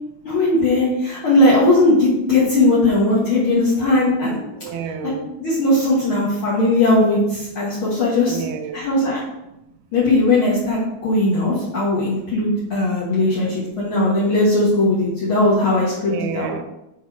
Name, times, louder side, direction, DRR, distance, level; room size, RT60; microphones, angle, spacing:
voice 1, 0.3-4.4 5.4-8.4 8.7-9.2 9.9-16.5, left 2 dB, 50° left, -6 dB, 2.0 m, -18 dB
voice 2, 4.5-5.3 8.3-8.9 16.1-16.6, right 7 dB, 85° right, 8 dB, 2.1 m, -29 dB
7.2 x 4.3 x 4.8 m, 0.89 s
omnidirectional pair, 3.3 m